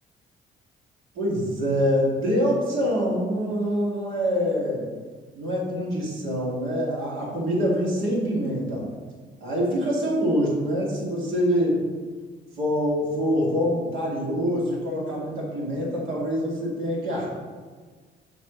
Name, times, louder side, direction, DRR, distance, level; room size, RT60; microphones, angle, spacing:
voice 1, 1.1-4.9 5.3-8.8 9.4-11.8 12.6-17.4, equal, 90° right, -4 dB, 2.3 m, -25 dB
7.2 x 3.4 x 6.2 m, 1.5 s
cardioid pair, 90°, 20 cm